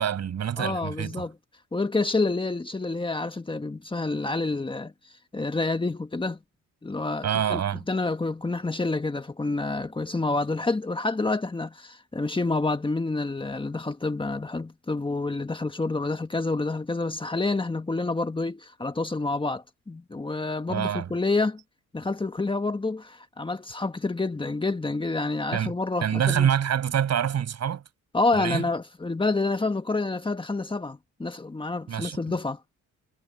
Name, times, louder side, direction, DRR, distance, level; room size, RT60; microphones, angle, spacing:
voice 1, 0.0-1.3 7.2-7.8 20.7-21.1 25.5-25.7 26.0-27.8 28.3-28.6 31.9-32.2, right 9 dB, 60° right, 6.0 m, -26 dB
voice 2, 0.6-1.3 1.7-4.9 5.3-6.4 6.8-7.6 7.9-21.6 21.9-26.5 28.1-32.6, left 3 dB, 15° left, 1.6 m, -28 dB
cardioid pair, 90°, 30 cm